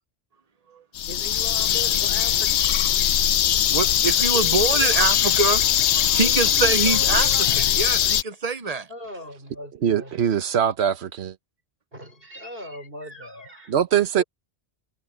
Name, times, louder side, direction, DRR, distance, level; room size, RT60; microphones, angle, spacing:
sound 1, 1.0-8.2, left 11 dB, 85° left, 0.9 m, -21 dB
voice 1, 1.1-2.7 3.2-3.3 3.7-3.9 4.3-5.1 6.2-7.7 8.9-10.2 11.9-13.7 14.1-14.2, equal, 60° right, 5.8 m, -39 dB
voice 2, 3.7-7.3 7.5-8.9, right 4 dB, 40° right, 0.8 m, -25 dB
voice 3, 9.8-11.3 13.7-14.2, right 9 dB, 75° right, 1.2 m, -22 dB
omnidirectional pair, 1.1 m